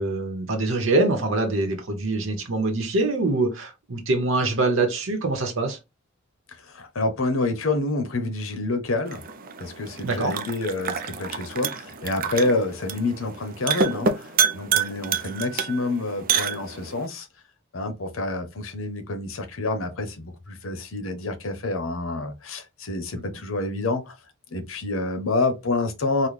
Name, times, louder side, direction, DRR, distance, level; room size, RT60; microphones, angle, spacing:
voice 1, 0.0-5.8 10.0-10.4, right 2 dB, 80° right, 0.9 m, -24 dB
voice 2, 6.6-9.2 9.6-17.3 17.7-24.1 24.5-26.3, left 2 dB, 90° left, 0.8 m, -28 dB
sound 1, 9.1-17.1, right 6 dB, 45° right, 0.4 m, -28 dB
3.8 x 2.2 x 3.2 m
head